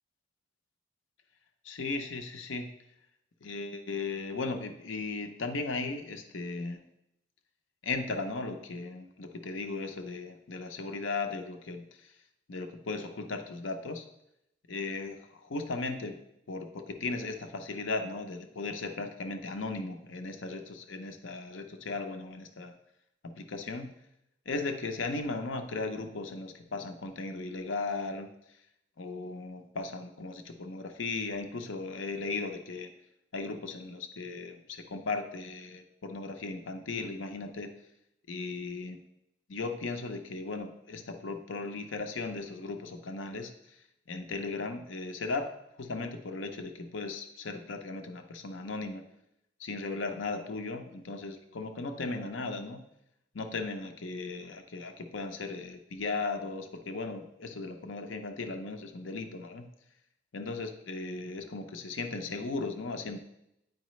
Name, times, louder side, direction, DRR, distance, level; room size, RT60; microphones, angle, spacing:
voice 1, 1.6-2.7 3.4-6.8 7.8-12.1 12.5-14.0 14.7-16.2 16.5-22.7 23.4-23.9 24.5-28.3 29.0-32.9 33.3-37.7 38.3-39.0 39.5-43.5 44.1-45.5 45.8-49.0 49.6-52.8 53.3-59.7 60.3-63.2, left 3 dB, 80° left, 6 dB, 0.7 m, -37 dB
9.1 x 4.8 x 3.1 m, 0.81 s
head